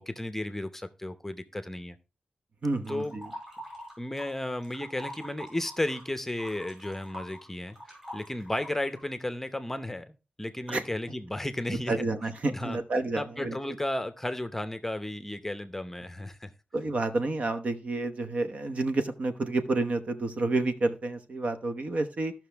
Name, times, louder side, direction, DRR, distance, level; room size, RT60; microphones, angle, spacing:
voice 1, 0.0-2.0 2.9-3.2 4.0-11.9 12.5-12.8 13.1-16.5, left 1 dB, 10° left, 0.7 m, -34 dB
voice 2, 2.6-3.3 10.7-10.8 11.7-13.6 16.7-22.3, right 2 dB, 55° right, 1.1 m, -29 dB
sound 1, 2.8-4.3 4.6-9.1, equal, 20° right, 6.5 m, -44 dB
15.0 x 6.0 x 3.4 m
wide cardioid pair, 135°, 3 cm